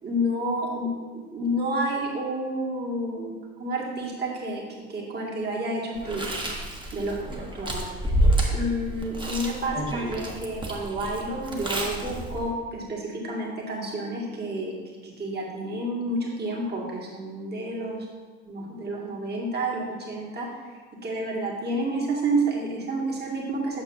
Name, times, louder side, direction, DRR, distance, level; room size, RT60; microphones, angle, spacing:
voice 1, 0.0-3.3 3.6-4.6 4.9-6.2 6.9-7.9 8.5-14.7 15.0-18.1 18.5-20.5 21.0-23.8, right 1 dB, 30° right, -3 dB, 1.9 m, -30 dB
Chewing mastication, 6.0-12.5, right 1 dB, 15° right, 1.2 m, -29 dB
8.4 x 6.5 x 2.6 m, 1.4 s
figure-of-eight pair, 60°, 31 cm